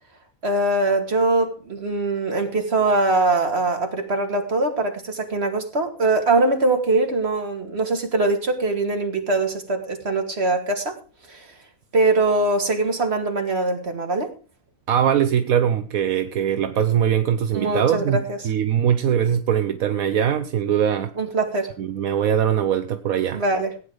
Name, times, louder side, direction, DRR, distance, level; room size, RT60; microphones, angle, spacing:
voice 1, 0.4-11.0 11.3-11.5 11.9-14.3 17.5-18.5 21.2-21.7 23.3-23.7, right 2 dB, 45° right, 2.6 m, -22 dB
voice 2, 14.9-21.1 21.8-23.4, right 9 dB, 80° right, 1.3 m, -21 dB
16.5 x 9.5 x 5.0 m
omnidirectional pair, 1.5 m